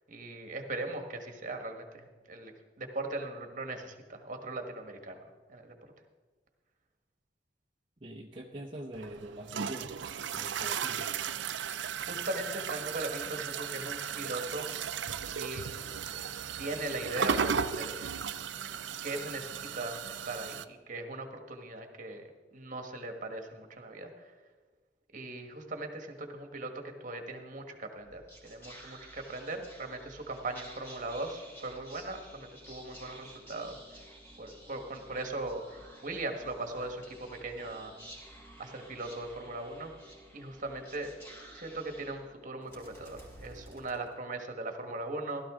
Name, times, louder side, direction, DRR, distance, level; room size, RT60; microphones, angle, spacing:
voice 1, 0.1-2.5 2.8-5.2 5.5-5.7 12.1-14.7 15.3-15.6 16.1-18.1 19.0-22.2 22.5-24.3 25.1-33.8 34.4-37.9 38.6-39.9 40.3-41.1 41.5-45.5, right 2 dB, 45° right, 5 dB, 1.5 m, -39 dB
voice 2, 8.0-9.9 10.3-11.1, right 1 dB, 30° right, -1 dB, 0.8 m, -43 dB
sound 1, 8.9-20.6, right 7 dB, 80° right, 0.5 m, -36 dB
Whispering, 28.0-44.6, right 1 dB, 15° left, 3.3 m, -52 dB
16.0 x 12.5 x 3.7 m, 1.4 s
head